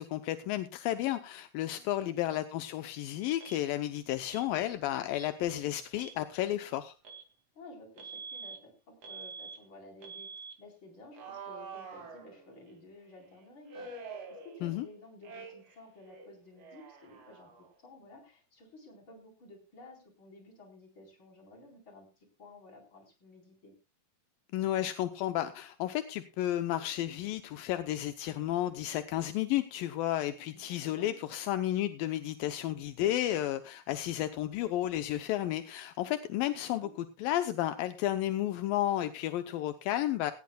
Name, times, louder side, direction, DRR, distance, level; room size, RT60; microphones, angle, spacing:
voice 1, 0.0-6.9 14.6-14.9 24.5-40.3, left 13 dB, 80° left, 9 dB, 2.5 m, -32 dB
voice 2, 1.7-2.3 7.5-23.7 30.3-31.1 36.6-36.9, left 2 dB, 35° left, 1 dB, 4.9 m, -54 dB
Alarm, 3.4-3.6 4.3-4.5 5.1-5.3 5.9-6.2 7.0-7.3 8.0-8.6 9.0-9.6 10.0-10.6 11.1-12.7 13.7-14.9 15.2-15.8 16.0-17.8, right 5 dB, 50° right, 3.1 m, -46 dB
18.0 x 16.0 x 2.3 m, 0.30 s
omnidirectional pair, 4.1 m